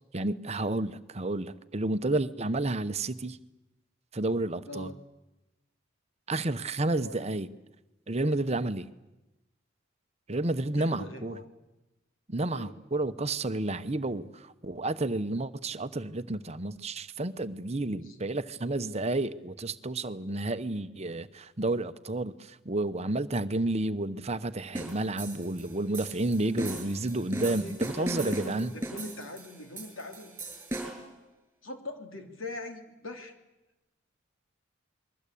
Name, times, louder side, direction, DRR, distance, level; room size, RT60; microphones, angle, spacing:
voice 1, 0.1-3.4 4.1-4.9 6.3-7.5 8.1-8.9 10.3-11.4 12.3-28.7, right 2 dB, 30° right, 11 dB, 0.9 m, -31 dB
voice 2, 4.6-5.0 6.9-7.3 10.7-11.4 12.5-12.8 17.9-18.3 27.4-30.3 31.6-33.3, left 2 dB, 80° left, 5 dB, 3.3 m, -41 dB
sound 1, 24.7-31.1, right 1 dB, 10° right, 6.5 m, -38 dB
28.0 x 21.5 x 8.5 m, 1.0 s
head